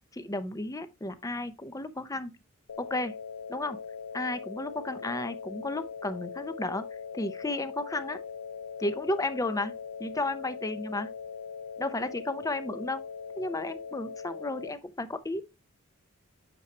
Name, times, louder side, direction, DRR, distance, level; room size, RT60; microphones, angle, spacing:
voice 1, 0.1-2.3 2.8-3.1 3.5-3.8 4.1-6.8 7.1-8.2 8.8-9.7 10.0-11.1 11.8-13.0 13.4-15.4, left 2 dB, 15° left, 0.6 m, -33 dB
sound 1, 2.7-14.7, left 6 dB, 90° left, 0.5 m, -41 dB
9.1 x 4.6 x 2.8 m
head